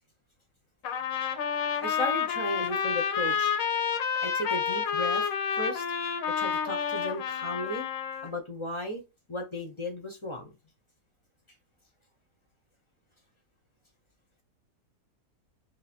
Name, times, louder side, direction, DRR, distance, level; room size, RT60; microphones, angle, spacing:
Trumpet, 0.8-8.3, left 7 dB, 70° left, 0.9 m, -29 dB
voice 1, 1.8-3.5 4.2-5.2 5.5-5.8 6.4-7.9 8.2-9.0 9.3-10.5, left 1 dB, 35° left, 4 dB, 0.5 m, -35 dB
3.0 x 2.5 x 4.2 m, 0.26 s
omnidirectional pair, 1.7 m